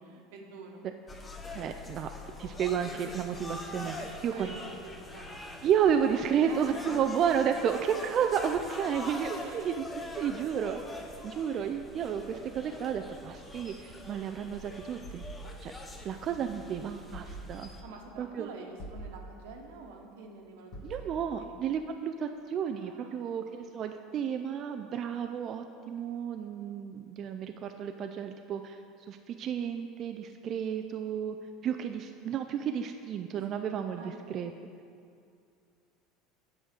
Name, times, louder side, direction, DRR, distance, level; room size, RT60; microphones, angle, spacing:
voice 1, 0.0-0.9 4.0-5.7 6.4-6.9 9.4-9.7 17.8-20.7 21.0-21.6 22.8-23.4 33.5-33.6 34.0-34.4, right 4 dB, 85° right, 1 dB, 1.2 m, -47 dB
sound 1, 1.1-17.8, left 2 dB, 15° left, 0.8 m, -44 dB
voice 2, 1.5-2.1 2.4-3.9 4.2-4.6 5.6-9.8 10.2-15.2 15.6-15.7 16.0-17.7 18.2-18.5 20.8-28.8 29.1-31.4 31.6-34.5, right 8 dB, 40° right, 6 dB, 0.4 m, -32 dB
sound 2, 15.0-16.4 17.1-18.0 18.8-19.7 20.7-21.5, right 1 dB, 50° left, 1.5 m, -46 dB
8.8 x 6.3 x 5.1 m, 2.4 s
supercardioid pair, 135°, 0 cm